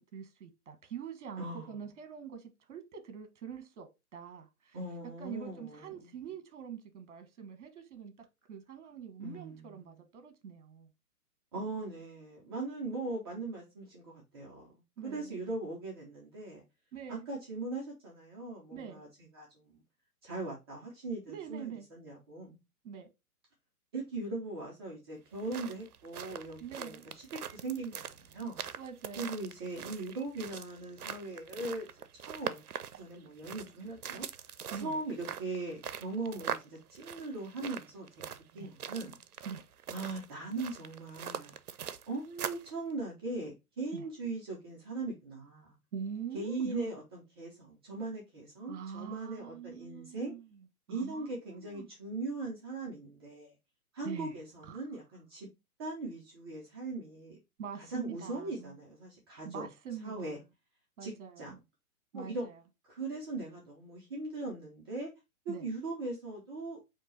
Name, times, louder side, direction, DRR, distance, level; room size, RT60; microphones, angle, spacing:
voice 1, 0.0-4.8 5.2-10.9 15.0-15.4 16.9-17.3 18.7-19.0 21.3-21.9 22.8-23.1 26.6-27.0 28.8-29.4 34.7-35.0 38.5-38.7 39.4-39.6 41.8-41.9 43.9-44.0 45.9-46.9 48.6-51.9 54.0-54.4 54.6-54.8 57.6-58.8 59.4-60.3 61.0-61.6 62.1-62.6 65.5-65.7, right 7 dB, 50° right, 1.2 m, -44 dB
voice 2, 1.4-1.7 4.7-6.1 9.2-10.0 11.5-14.7 15.0-16.6 17.3-19.1 19.3-19.8 20.2-22.6 23.9-27.0 27.3-28.6 29.2-31.9 32.3-34.3 34.8-39.2 39.9-41.5 42.1-45.8 46.3-50.3 50.9-53.5 53.9-55.5 55.8-57.4 57.8-59.7 60.0-60.4 61.0-61.5 62.1-62.5 62.9-65.1 65.5-66.9, right 2 dB, 15° right, 0.6 m, -40 dB
sound 1, 25.3-42.7, right 8 dB, 75° right, 0.6 m, -43 dB
4.5 x 2.8 x 3.9 m
figure-of-eight pair, 130°, 45 cm